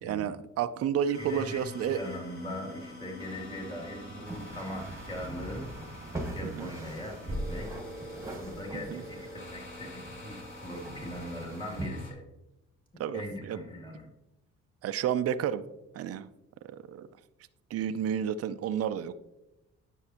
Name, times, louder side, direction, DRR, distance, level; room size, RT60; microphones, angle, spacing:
voice 1, 0.0-2.0 6.4-6.7 8.9-9.0 13.0-13.6 14.8-15.7 15.9-16.3 16.6-17.1 17.7-19.2, right 9 dB, 55° right, 11 dB, 0.5 m, -31 dB
sound 1, 1.0-12.1, equal, 45° left, 2.6 m, -46 dB
voice 2, 1.2-7.8 8.3-12.2 13.1-14.1, left 1 dB, 15° left, -1 dB, 2.7 m, -40 dB
sound 2, 4.2-11.9, right 1 dB, 10° right, 1.6 m, -41 dB
9.7 x 7.0 x 2.9 m, 0.93 s
cardioid pair, 90°, 30 cm